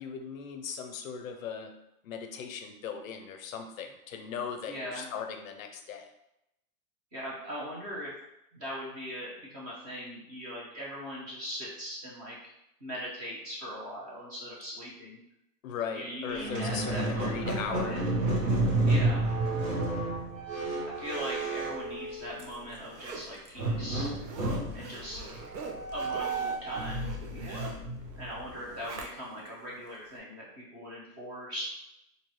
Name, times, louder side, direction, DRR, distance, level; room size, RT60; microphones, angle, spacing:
voice 1, 0.0-1.8 2.0-6.1 15.6-18.0, left 7 dB, 55° left, 5 dB, 0.6 m, -38 dB
voice 2, 4.7-5.1 7.1-8.1 8.5-12.5 12.8-15.2 15.9-18.0 18.9-19.2 20.8-24.1 24.7-25.4 25.9-27.7 28.2-31.6, equal, 20° right, -6 dB, 0.8 m, -40 dB
Squeak, 16.3-22.6 23.6-28.8, right 2 dB, 50° right, 1.2 m, -31 dB
Zipper (clothing), 21.9-29.5 29.9-30.0, right 3 dB, 85° right, 1.0 m, -44 dB
4.4 x 2.7 x 3.1 m, 0.85 s
supercardioid pair, 175°, 49 cm